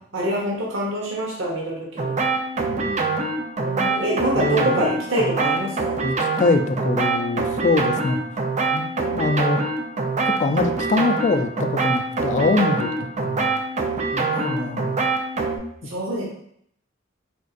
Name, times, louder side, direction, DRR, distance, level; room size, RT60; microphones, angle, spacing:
voice 1, 0.1-2.1 3.6-6.0 14.3-14.8 15.9-16.2, right 1 dB, 80° right, -2 dB, 1.0 m, -25 dB
sound 1, 2.0-15.6, right 3 dB, 35° right, 0.5 m, -25 dB
voice 2, 2.7-3.2 4.3-4.9 6.0-8.2 8.7-9.6 10.2-12.9 13.2-13.5 14.1-15.0, left 3 dB, 40° left, 6 dB, 0.4 m, -23 dB
4.3 x 3.9 x 2.4 m, 0.68 s
head